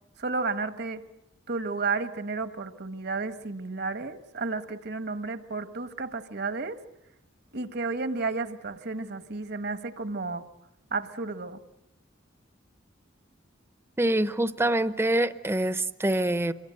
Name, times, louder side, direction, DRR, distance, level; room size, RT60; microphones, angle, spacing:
voice 1, 0.2-1.0 1.5-6.8 7.5-10.5 10.9-11.6, right 3 dB, 60° right, 10 dB, 1.4 m, -32 dB
voice 2, 14.0-16.5, right 1 dB, 15° right, 12 dB, 0.8 m, -25 dB
27.5 x 22.5 x 7.8 m, 0.86 s
head